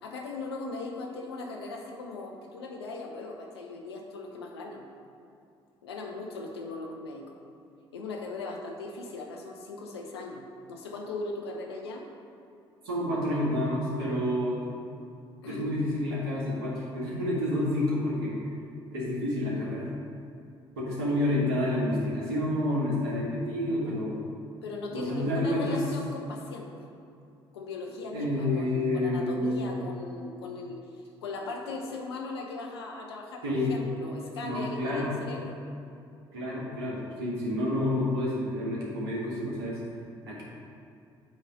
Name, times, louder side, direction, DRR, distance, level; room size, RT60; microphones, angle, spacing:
voice 1, 0.0-4.8 5.8-7.4 7.9-10.4 10.7-12.1 15.4-15.7 21.0-21.1 24.6-26.7 27.5-30.8 31.2-35.6, left 3 dB, 80° left, 0 dB, 0.8 m, -38 dB
voice 2, 12.8-14.6 15.4-18.4 18.9-19.9 20.8-24.2 24.9-25.8 28.1-29.7 33.4-33.7 34.4-35.1 36.3-39.8 40.3-40.4, left 1 dB, 75° right, -5 dB, 1.6 m, -29 dB
8.1 x 3.2 x 5.1 m, 2.5 s
figure-of-eight pair, 50°, 13 cm